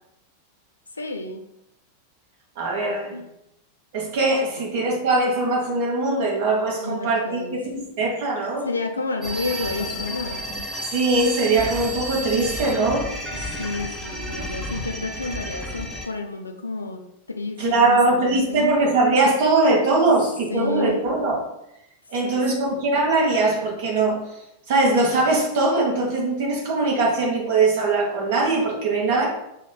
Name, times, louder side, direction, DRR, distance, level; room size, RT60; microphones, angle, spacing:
voice 1, 0.9-1.4 3.1-3.3 6.8-7.6 8.6-10.5 13.3-17.0 17.3-18.8 20.5-21.0 22.2-22.8, left 3 dB, 80° left, 5 dB, 0.4 m, -31 dB
voice 2, 2.6-3.1 3.9-8.7 10.9-13.1 17.6-21.4 22.1-24.2 24.7-29.3, right 2 dB, 50° right, -2 dB, 1.1 m, -21 dB
sound 1, 9.2-16.1, equal, 10° right, 0.9 m, -31 dB
5.6 x 3.1 x 2.3 m, 0.82 s
figure-of-eight pair, 90°, 0 cm